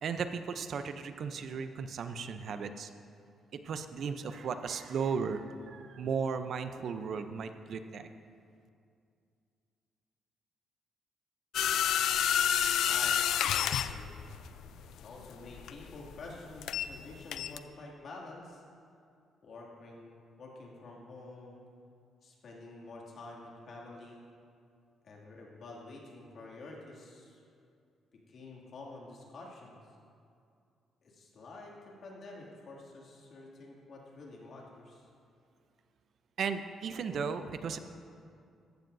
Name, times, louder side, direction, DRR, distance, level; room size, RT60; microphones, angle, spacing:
voice 1, 0.0-2.9 3.5-8.1 36.4-37.8, right 6 dB, 60° right, 9 dB, 0.6 m, -35 dB
sound 1, 11.5-17.0 17.3-17.6, left 9 dB, 80° left, 0.3 m, -29 dB
voice 2, 12.9-14.2 15.0-18.6 19.4-21.6 22.2-24.2 25.0-27.4 28.3-29.8 31.0-35.0, left 2 dB, 60° left, -2 dB, 2.4 m, -48 dB
15.0 x 12.0 x 2.7 m, 2.4 s
cardioid pair, 90°, 0 cm